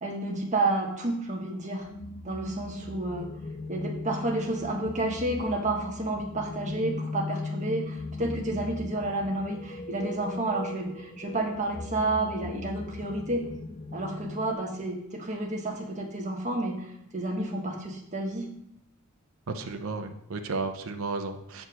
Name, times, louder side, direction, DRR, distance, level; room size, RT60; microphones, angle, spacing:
voice 1, 0.0-1.9 2.2-3.3 3.7-13.4 13.9-18.5, right 2 dB, 35° right, 0 dB, 1.5 m, -30 dB
sound 1, 1.8-14.5, left 3 dB, 25° left, 0.4 m, -38 dB
voice 2, 19.5-21.7, right 3 dB, 75° right, 6 dB, 0.7 m, -33 dB
7.8 x 4.3 x 6.2 m, 0.77 s
head